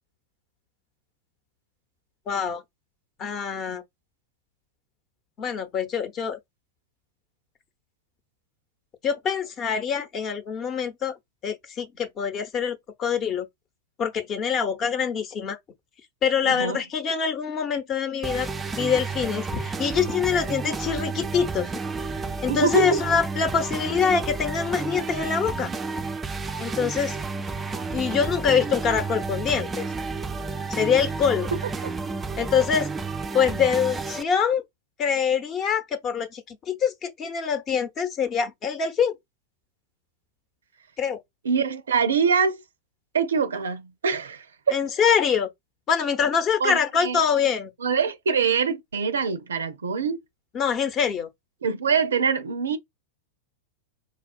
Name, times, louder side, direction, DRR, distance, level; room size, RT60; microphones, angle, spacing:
voice 1, 2.3-2.6 3.2-3.8 5.4-6.4 9.0-11.1 11.4-13.5 14.0-15.6 16.2-18.5 18.8-21.7 22.4-25.7 26.6-27.2 27.9-29.8 30.7-31.5 32.4-32.9 33.3-34.6 35.0-39.2 41.0-41.2 44.7-45.5 45.9-47.7 50.5-51.3, left 7 dB, 30° left, 0.9 m, -24 dB
voice 2, 16.5-16.8 22.5-23.0 31.8-31.9 41.4-42.6 43.1-44.8 46.6-47.2 47.8-50.2 51.6-52.8, right 6 dB, 75° right, 0.5 m, -24 dB
sound 1, 18.2-34.2, right 4 dB, 15° right, 0.4 m, -31 dB
4.4 x 2.3 x 2.3 m
figure-of-eight pair, 95°, 0 cm